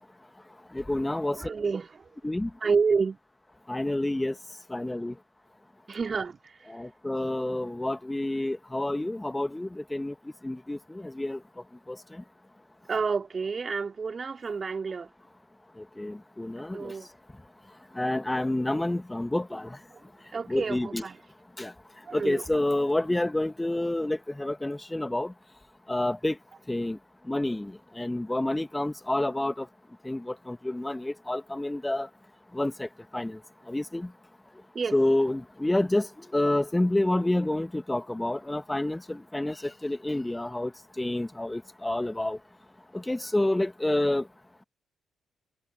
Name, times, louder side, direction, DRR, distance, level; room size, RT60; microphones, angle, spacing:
voice 1, 0.7-1.4 2.2-2.5 3.7-4.3 4.7-5.1 6.7-10.1 10.4-11.4 11.9-12.0 16.0-16.9 18.0-19.7 20.5-21.0 21.6-21.7 22.1-25.3 25.9-26.4 26.7-27.0 27.3-27.7 28.0-29.7 30.1-32.1 32.5-32.9 33.1-33.4 33.7-34.1 34.9-36.1 36.3-39.6 39.8-40.7 41.0-42.4 42.9-44.2, left 1 dB, 10° left, 2.2 m, -28 dB
voice 2, 1.3-2.1 2.6-3.2 5.9-6.6 12.9-15.1 16.7-17.1 19.9-20.0 20.3-21.2 22.1-22.6 34.7-35.0, right 5 dB, 35° right, 2.8 m, -29 dB
figure-of-eight pair, 40°, 0 cm